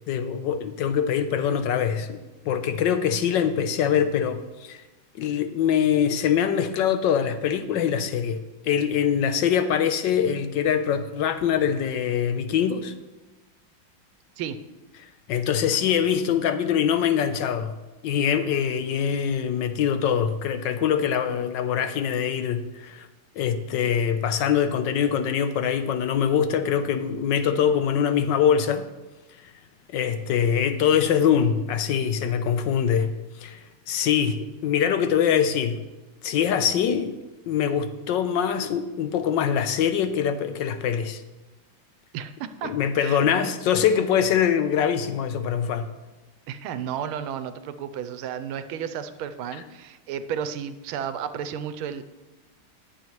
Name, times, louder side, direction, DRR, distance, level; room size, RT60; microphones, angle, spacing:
voice 1, 0.1-2.2 2.4-4.8 5.2-12.9 15.3-17.7 18.0-23.1 23.4-28.9 29.9-35.8 36.2-37.2 37.5-41.2 42.6-45.9, left 8 dB, 70° left, 9 dB, 1.2 m, -23 dB
voice 2, 42.1-42.7 43.0-43.5 46.5-52.0, right 8 dB, 90° right, 11 dB, 1.5 m, -33 dB
20.0 x 7.0 x 3.1 m, 1.1 s
omnidirectional pair, 2.3 m